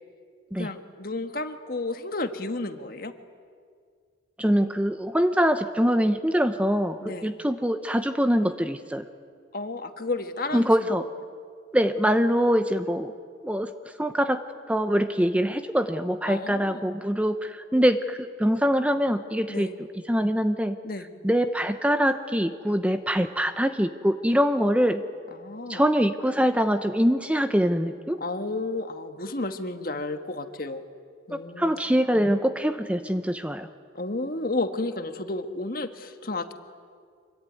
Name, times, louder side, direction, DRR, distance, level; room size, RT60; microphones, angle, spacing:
voice 1, 0.6-3.1 7.0-7.3 9.5-10.9 16.3-16.8 19.5-19.8 20.8-21.1 25.4-25.8 28.2-30.8 31.3-31.8 33.9-36.5, left 2 dB, 50° left, 7 dB, 1.6 m, -32 dB
voice 2, 4.4-9.0 10.5-11.0 11.7-13.1 13.4-13.7 14.0-14.4 14.7-19.7 20.1-20.8 21.2-25.0 25.7-28.2 31.3-33.7, equal, 5° right, 9 dB, 0.8 m, -24 dB
25.5 x 23.0 x 9.5 m, 2.1 s
head